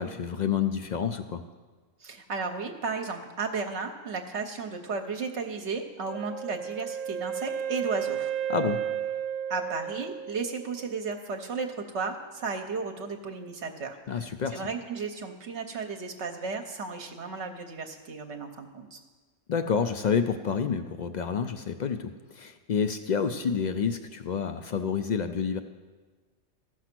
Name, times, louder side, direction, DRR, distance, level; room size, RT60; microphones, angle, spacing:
voice 1, 0.0-1.4 8.5-8.8 14.1-14.6 19.5-25.6, left 6 dB, 70° left, 8 dB, 0.4 m, -29 dB
voice 2, 2.0-8.3 9.5-19.0, right 4 dB, 65° right, 5 dB, 1.0 m, -34 dB
Wind instrument woodwind instrument, 6.1-10.9, right 9 dB, 90° right, 1.0 m, -33 dB
14.0 x 6.3 x 5.9 m, 1.3 s
omnidirectional pair, 1.3 m